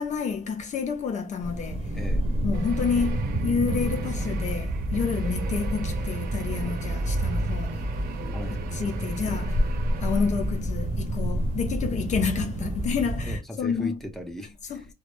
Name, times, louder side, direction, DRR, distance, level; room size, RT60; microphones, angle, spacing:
voice 1, 0.0-2.0 2.4-8.2 8.7-9.7 10.0-14.0 14.7-14.9, left 6 dB, 45° left, 0.5 m, -29 dB
sound 1, 1.4-13.4, right 1 dB, 35° right, 0.7 m, -28 dB
sound 2, 2.5-10.8, right 10 dB, 65° right, 0.4 m, -43 dB
voice 2, 8.3-9.3 13.2-14.9, left 2 dB, ahead, 0.6 m, -38 dB
2.2 x 2.0 x 3.0 m
cardioid pair, 110°, 17 cm